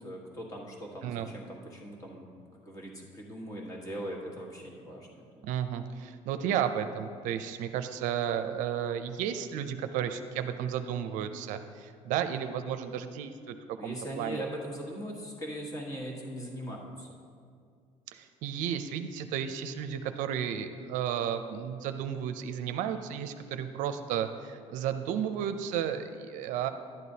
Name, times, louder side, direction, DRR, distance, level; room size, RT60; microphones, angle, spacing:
voice 1, 0.0-2.3 2.6-5.5 13.8-17.1, equal, 25° left, -1 dB, 1.5 m, -40 dB
voice 2, 5.4-14.4 18.1-26.7, right 9 dB, 75° right, 9 dB, 0.5 m, -33 dB
11.5 x 9.3 x 2.8 m, 2.2 s
cardioid pair, 150°, 13 cm